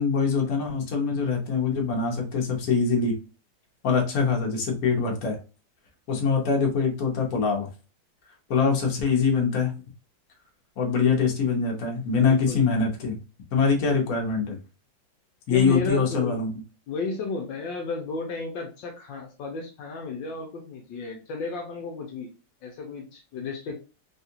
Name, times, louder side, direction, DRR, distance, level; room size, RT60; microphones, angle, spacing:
voice 1, 0.0-3.1 3.8-5.4 6.1-7.7 8.5-9.7 10.8-13.2 13.5-14.6 15.5-16.5, left 5 dB, 55° left, 0 dB, 1.2 m, -23 dB
voice 2, 12.2-12.6 15.5-16.4 16.9-22.3 22.6-23.8, left 3 dB, 75° left, 2 dB, 1.3 m, -33 dB
3.5 x 2.4 x 2.7 m, 0.33 s
omnidirectional pair, 2.1 m